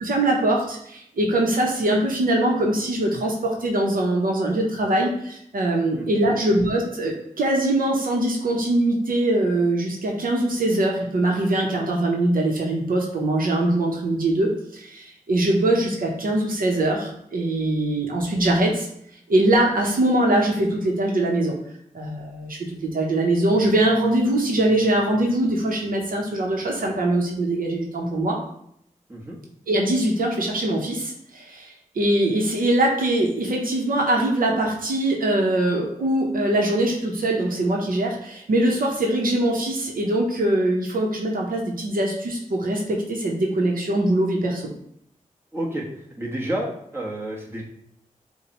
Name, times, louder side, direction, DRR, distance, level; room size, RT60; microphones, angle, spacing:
voice 1, 0.0-18.9 19.3-21.5 21.9-28.4 29.7-44.7, right 1 dB, 80° right, 0 dB, 0.9 m, -22 dB
voice 2, 5.9-6.5 29.1-29.4 45.5-45.8 46.2-47.6, right 1 dB, 15° right, -3 dB, 1.2 m, -30 dB
6.8 x 2.3 x 2.9 m, 0.71 s
cardioid pair, 60°, 15 cm